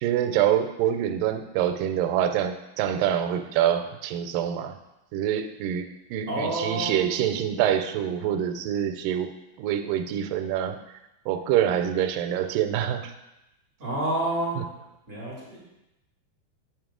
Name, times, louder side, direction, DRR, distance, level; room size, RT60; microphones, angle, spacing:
voice 1, 0.0-4.8 5.1-9.3 9.6-10.8 11.3-13.1 14.6-14.7, right 10 dB, 90° right, 7 dB, 2.2 m, -26 dB
voice 2, 6.2-7.1 13.8-14.6 15.1-15.6, right 1 dB, 25° right, -7 dB, 2.0 m, -29 dB
7.4 x 5.2 x 3.7 m, 0.92 s
omnidirectional pair, 3.8 m